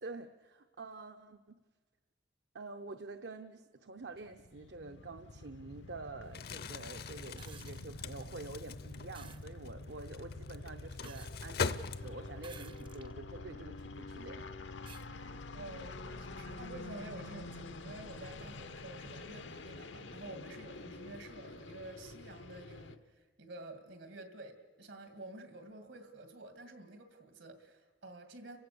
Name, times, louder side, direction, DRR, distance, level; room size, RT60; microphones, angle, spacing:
voice 1, 0.0-1.6 2.5-14.5 15.0-15.4 16.1-16.2, right 3 dB, 65° right, 8 dB, 0.7 m, -48 dB
sound 1, 4.1-23.0, left 2 dB, 85° left, 0.9 m, -47 dB
Crumpling crinkling, 6.3-12.5, left 5 dB, 55° left, 0.6 m, -41 dB
sound 2, 7.4-7.9 9.1-9.5 11.0-11.6 12.4-13.1 13.8-13.9 14.9-15.1 16.5-16.6, right 6 dB, 25° right, 0.6 m, -54 dB
voice 2, 15.5-28.6, right 2 dB, 80° right, 7 dB, 2.4 m, -50 dB
30.0 x 16.0 x 6.9 m, 1.4 s
head